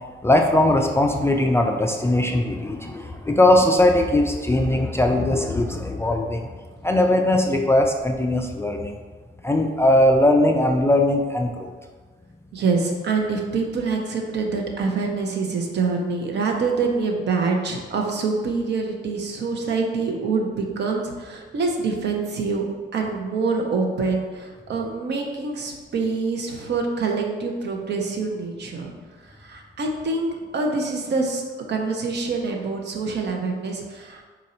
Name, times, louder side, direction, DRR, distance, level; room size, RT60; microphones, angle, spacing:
voice 1, 0.2-6.5 6.8-8.9 9.4-11.7, left 1 dB, 15° left, 3 dB, 0.3 m, -19 dB
voice 2, 12.5-22.7 22.9-28.9 29.4-31.4 31.7-34.2, right 4 dB, 60° right, 2 dB, 0.7 m, -25 dB
4.0 x 2.5 x 4.2 m, 1.4 s
cardioid pair, 90°, 20 cm